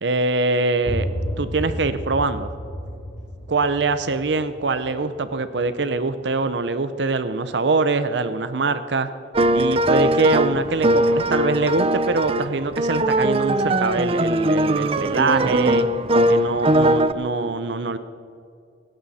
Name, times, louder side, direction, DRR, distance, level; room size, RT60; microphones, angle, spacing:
voice 1, 0.0-1.1 1.4-2.5 3.5-9.1 9.5-15.9 16.3-18.0, right 3 dB, 70° right, 12 dB, 0.7 m, -23 dB
sound 1, 0.8-6.4, equal, 20° left, 1.3 m, -32 dB
sound 2, 9.3-17.1, right 1 dB, 30° right, 0.6 m, -20 dB
17.5 x 16.5 x 4.2 m, 2.5 s
head